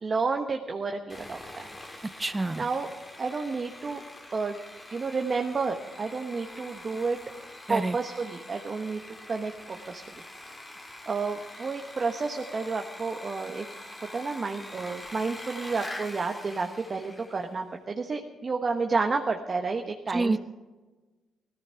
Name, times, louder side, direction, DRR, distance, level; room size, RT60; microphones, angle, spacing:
voice 1, 0.0-1.7 2.6-2.9 3.2-4.0 4.3-4.6 4.9-7.2 7.7-9.0 9.3-10.0 10.3-10.6 11.1-20.4, right 4 dB, 35° right, 4 dB, 1.2 m, -31 dB
Sawing, 1.1-17.5, left 1 dB, 20° left, 2.3 m, -44 dB
voice 2, 2.2-2.7 7.7-8.0 20.1-20.4, right 2 dB, 20° right, 14 dB, 0.5 m, -27 dB
17.0 x 14.5 x 5.8 m, 1.2 s
cardioid pair, 90°, 0 cm